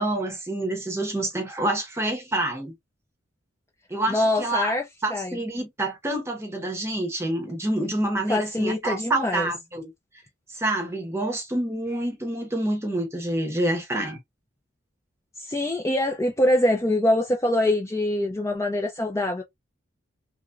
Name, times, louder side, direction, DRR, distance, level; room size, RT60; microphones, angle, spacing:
voice 1, 0.0-2.7 3.9-4.7 5.0-9.9 10.5-14.2, right 1 dB, 15° right, 0.7 m, -27 dB
voice 2, 4.1-4.8 5.1-5.4 8.3-9.5 15.4-19.4, left 1 dB, 15° left, 0.4 m, -24 dB
2.9 x 2.5 x 2.2 m
head